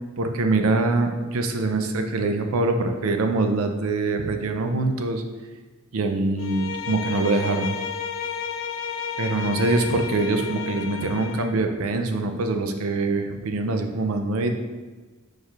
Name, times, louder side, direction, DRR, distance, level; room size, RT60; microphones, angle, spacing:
voice 1, 0.2-5.2 5.9-7.8 9.2-14.5, right 3 dB, 75° right, 6 dB, 0.5 m, -24 dB
Bowed string instrument, 6.4-11.6, left 7 dB, 65° left, 0.3 m, -32 dB
4.8 x 4.5 x 2.4 m, 1.3 s
head